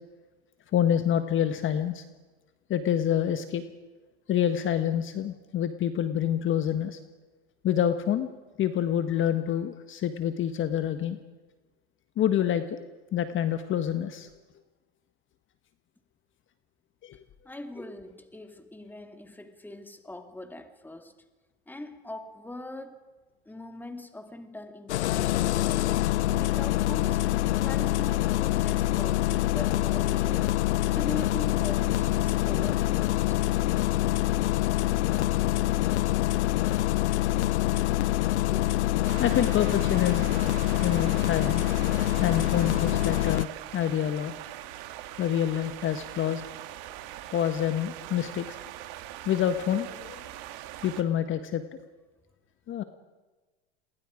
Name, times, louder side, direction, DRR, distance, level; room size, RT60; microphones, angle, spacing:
voice 1, 0.7-2.0 2.7-3.6 4.3-7.0 7.6-8.3 8.6-11.2 12.2-12.8 13.1-14.3 17.0-17.2 39.1-40.3 40.8-41.6 42.2-44.3 45.2-46.5 47.3-48.6 49.2-50.2 50.8-51.8 52.7-52.8, left 10 dB, 35° left, 1.5 m, -27 dB
voice 2, 17.4-21.2 21.7-23.0 23.5-25.8 26.3-27.2 27.5-30.6 30.9-33.4, left 2 dB, 5° left, 2.3 m, -41 dB
Engine starting, 24.9-43.5, left 15 dB, 85° left, 0.6 m, -25 dB
sound 1, 39.1-51.0, right 13 dB, 60° right, 2.2 m, -42 dB
28.5 x 22.5 x 5.1 m
hypercardioid pair, 105°, 33 cm